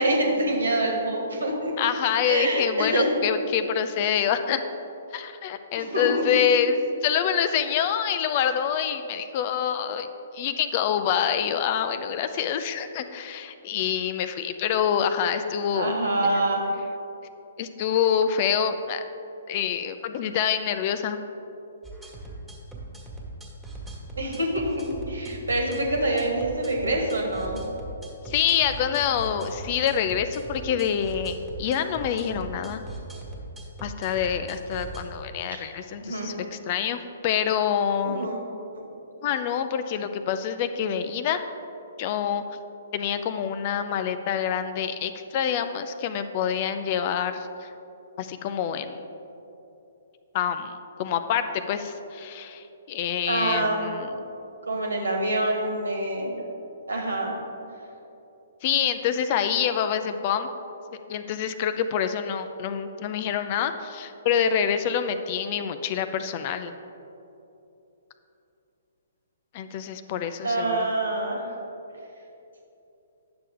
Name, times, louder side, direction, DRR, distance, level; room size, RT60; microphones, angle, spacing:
voice 1, 0.0-1.7 2.2-3.1 5.7-6.2 15.7-16.6 24.2-27.6 36.0-36.3 38.0-38.4 53.3-54.2 54.7-56.3 56.9-57.4 70.4-71.5, right 1 dB, 80° right, 1 dB, 1.6 m, -26 dB
voice 2, 1.8-4.6 5.1-10.1 10.3-15.9 16.2-16.3 17.6-19.0 19.5-21.2 28.3-32.8 33.8-38.3 39.2-41.4 42.0-42.4 42.9-47.7 48.2-49.1 50.3-50.7 51.0-54.1 58.6-60.5 61.1-66.7 69.5-70.8, left 8 dB, 40° left, 9 dB, 0.5 m, -26 dB
sound 1, 21.8-35.0, right 2 dB, 5° right, 1.6 m, -39 dB
9.7 x 6.8 x 3.7 m, 2.9 s
figure-of-eight pair, 125°, 0 cm